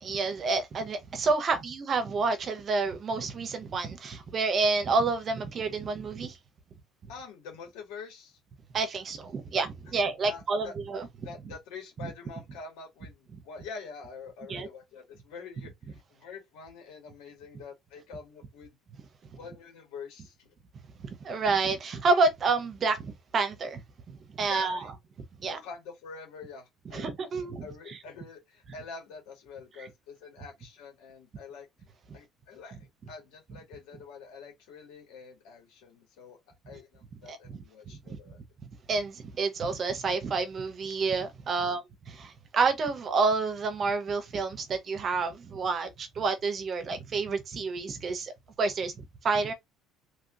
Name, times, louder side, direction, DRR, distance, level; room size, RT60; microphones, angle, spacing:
voice 1, 0.0-6.4 8.7-11.1 13.3-13.4 14.5-14.7 21.2-23.8 24.1-24.9 25.4-25.6 26.9-28.0 37.3-37.6 38.9-48.3 48.6-49.5, right 4 dB, 40° right, 0.9 m, -29 dB
voice 2, 7.1-8.4 9.8-10.7 11.2-18.8 19.4-20.5 24.5-24.9 25.5-27.1 27.4-31.7 32.1-36.4 36.7-38.4 41.6-41.8, left 5 dB, 85° left, 1.8 m, -46 dB
3.0 x 2.9 x 2.5 m
cardioid pair, 110°, 0 cm